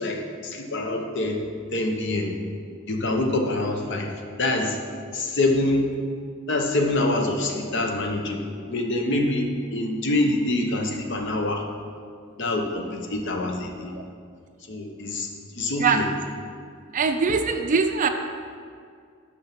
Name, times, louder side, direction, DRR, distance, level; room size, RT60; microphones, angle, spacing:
voice 1, 0.0-1.4 1.7-2.3 2.9-4.1 4.4-4.8 5.1-5.9 6.5-11.6 12.4-13.9 14.7-15.3 15.6-16.0, left 2 dB, 60° left, 2 dB, 0.9 m, -25 dB
voice 2, 16.9-18.1, right 5 dB, 40° right, 7 dB, 0.4 m, -22 dB
6.3 x 6.0 x 5.9 m, 2.2 s
head